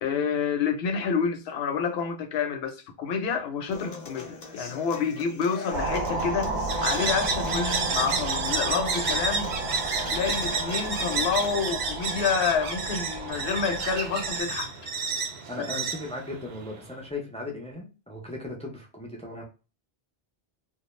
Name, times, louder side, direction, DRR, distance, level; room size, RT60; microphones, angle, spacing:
voice 1, 0.0-6.5 6.8-9.5 10.1-14.7 15.6-15.7, left 6 dB, 80° left, 0.8 m, -28 dB
Human voice / Acoustic guitar, 3.7-11.7, left 4 dB, 50° left, 0.6 m, -40 dB
sound 1, 5.7-14.4, right 2 dB, 55° right, 0.7 m, -33 dB
sound 2, 6.7-16.9, right 4 dB, 85° right, 0.8 m, -31 dB
voice 2, 15.5-19.4, left 2 dB, 10° left, 0.4 m, -37 dB
2.3 x 2.0 x 3.0 m
omnidirectional pair, 1.0 m